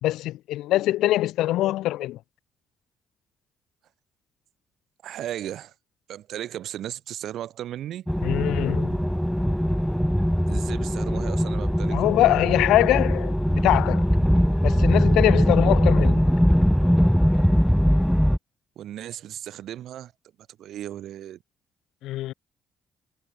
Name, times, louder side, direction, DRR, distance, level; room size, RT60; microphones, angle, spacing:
voice 1, 0.0-2.2 8.2-9.0 11.9-14.0 14.6-16.2 22.0-22.3, left 15 dB, 90° left, 2.4 m, -23 dB
voice 2, 5.0-5.7 6.1-8.1 10.5-12.0 18.8-20.1 20.6-21.4, right 11 dB, 75° right, 3.1 m, -35 dB
sound 1, 8.1-18.4, equal, ahead, 0.9 m, -21 dB
cardioid pair, 90°, 0 cm